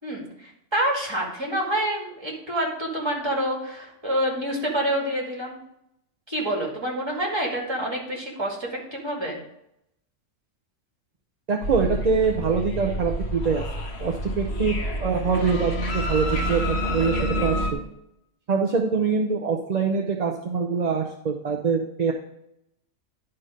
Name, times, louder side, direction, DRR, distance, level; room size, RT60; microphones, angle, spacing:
voice 1, 0.0-5.6 6.3-9.4, right 1 dB, 20° right, -3 dB, 2.3 m, -27 dB
voice 2, 11.5-13.6 14.0-17.8 18.5-22.1, right 5 dB, 40° right, 1 dB, 0.7 m, -24 dB
sound 1, 11.6-17.7, equal, 55° left, 1.3 m, -28 dB
10.5 x 4.3 x 5.0 m, 0.80 s
omnidirectional pair, 1.3 m